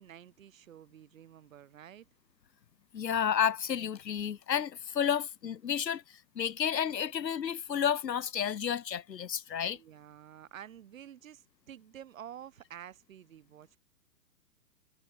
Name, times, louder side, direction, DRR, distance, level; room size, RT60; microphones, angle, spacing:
voice 1, 0.0-2.1 9.7-13.8, right 10 dB, 55° right, 1.2 m, -50 dB
voice 2, 2.9-9.8, left 8 dB, 90° left, 0.6 m, -31 dB
figure-of-eight pair, 120°, 48 cm